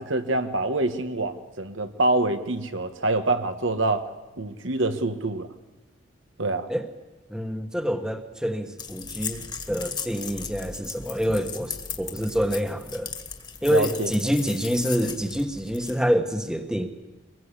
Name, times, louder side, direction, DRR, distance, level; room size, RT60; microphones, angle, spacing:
voice 1, 0.0-4.0 4.4-5.5 6.4-6.7 13.7-14.1, right 2 dB, 85° right, 8 dB, 1.7 m, -25 dB
voice 2, 7.3-13.1 13.6-16.9, equal, 5° right, 7 dB, 1.3 m, -26 dB
sound 1, 8.8-16.0, left 6 dB, 20° left, 1.8 m, -37 dB
24.0 x 20.5 x 8.4 m, 1.2 s
head